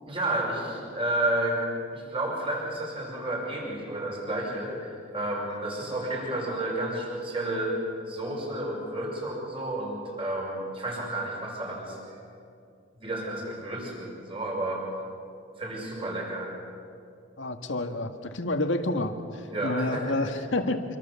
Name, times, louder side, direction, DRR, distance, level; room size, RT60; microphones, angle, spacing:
voice 1, 0.1-1.6 1.9-7.7 8.0-12.0 13.0-14.8 15.6-16.5 19.5-20.1, right 1 dB, 30° right, -2 dB, 6.1 m, -31 dB
voice 2, 17.4-20.8, left 2 dB, 80° left, 5 dB, 1.8 m, -29 dB
26.5 x 25.0 x 7.1 m, 2.4 s
head